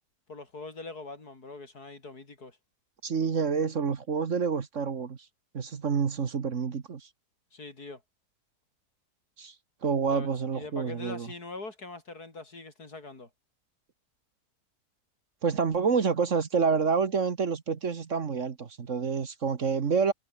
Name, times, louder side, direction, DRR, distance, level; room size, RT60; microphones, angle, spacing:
voice 1, 0.3-2.6 7.5-8.0 10.1-13.3, left 3 dB, 75° left, 4.9 m, -43 dB
voice 2, 3.0-5.2 5.5-7.1 9.4-9.5 9.8-11.3 15.4-20.1, right 5 dB, 50° right, 1.7 m, -28 dB
omnidirectional pair, 1.7 m